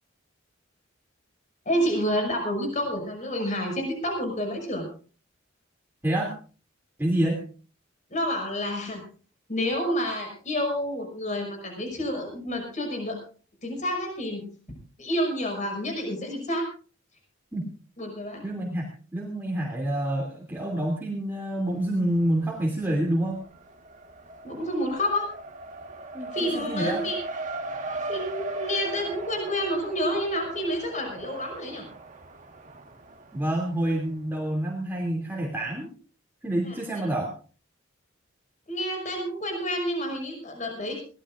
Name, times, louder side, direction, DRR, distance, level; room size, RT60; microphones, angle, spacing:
voice 1, 1.7-4.9 8.1-9.0 9.5-13.2 13.6-14.4 15.0-16.7 18.0-18.4 24.4-25.3 26.3-27.2 28.1-31.8 36.6-36.8 38.7-41.0, equal, 40° left, 3 dB, 6.0 m, -29 dB
voice 2, 6.0-6.3 7.0-7.4 17.5-17.7 18.4-18.8 19.1-23.4 26.1-27.0 33.3-35.9 36.4-37.3, right 1 dB, 10° right, -2 dB, 2.8 m, -27 dB
Race car auto racing, 21.7-22.4 22.7-34.1, right 2 dB, 40° right, 1.5 m, -38 dB
23.0 x 18.0 x 2.5 m, 0.39 s
head